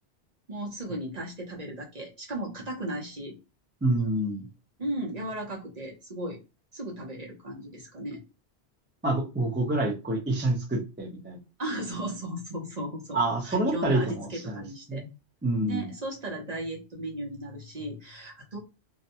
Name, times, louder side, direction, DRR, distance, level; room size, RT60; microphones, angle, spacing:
voice 1, 0.5-3.4 4.8-6.4 6.7-8.2 11.6-15.0 15.6-18.6, right 1 dB, 40° right, -1 dB, 0.7 m, -36 dB
voice 2, 3.8-4.5 9.0-11.4 13.1-15.1 15.4-15.9, right 2 dB, 15° right, -1 dB, 0.5 m, -27 dB
2.5 x 2.1 x 2.7 m, 0.27 s
omnidirectional pair, 1.1 m